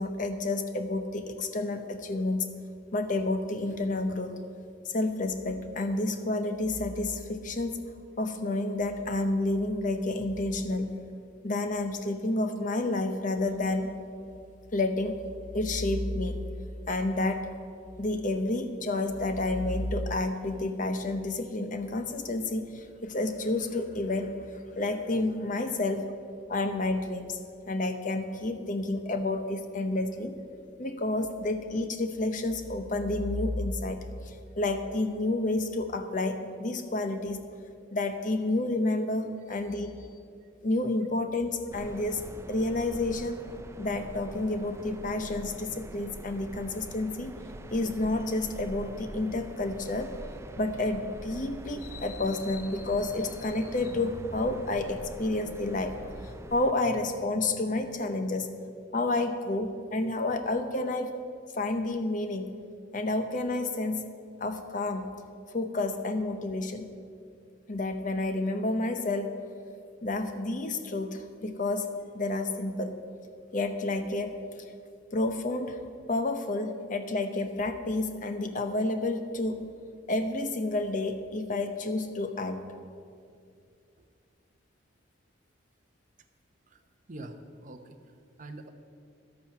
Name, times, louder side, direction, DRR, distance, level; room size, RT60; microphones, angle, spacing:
voice 1, 0.0-2.5 2.9-4.4 4.8-7.8 8.2-11.0 11.4-13.9 14.7-15.2 15.5-16.4 16.9-17.5 18.0-24.4 24.7-26.1 26.5-27.4 27.7-30.4 30.8-37.4 37.9-39.9 40.6-42.2 42.5-43.5 43.8-47.3 47.7-50.1 50.6-56.0 56.2-58.5 58.9-61.1 61.6-62.5 62.9-64.1 64.4-65.1 65.5-66.9 67.7-69.4 70.0-73.0 73.5-74.3 75.1-75.8 76.1-79.6 80.1-82.6, left 2 dB, 40° left, 8 dB, 0.7 m, -30 dB
sound 1, 41.7-56.7, right 1 dB, 15° right, 0.3 m, -44 dB
voice 2, 87.1-88.7, right 2 dB, 40° right, 5 dB, 0.8 m, -46 dB
12.0 x 8.4 x 5.9 m, 2.3 s
head